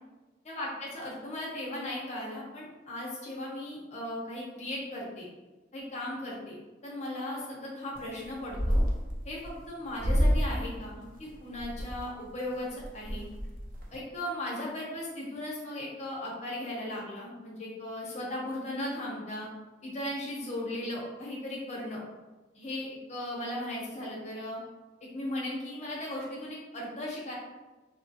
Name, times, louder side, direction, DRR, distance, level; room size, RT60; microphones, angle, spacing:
voice 1, 0.4-5.3 5.7-6.6 6.8-8.8 9.2-13.3 13.9-19.5 19.8-22.0 22.5-24.6 25.0-27.3, left 1 dB, 35° left, -5 dB, 0.8 m, -37 dB
sound 1, 8.0-8.2 8.5-9.6 10.0-10.6 11.0-12.0 12.5-12.6 12.8-13.9, equal, 45° right, 0.5 m, -28 dB
2.8 x 2.4 x 2.7 m, 1.2 s
head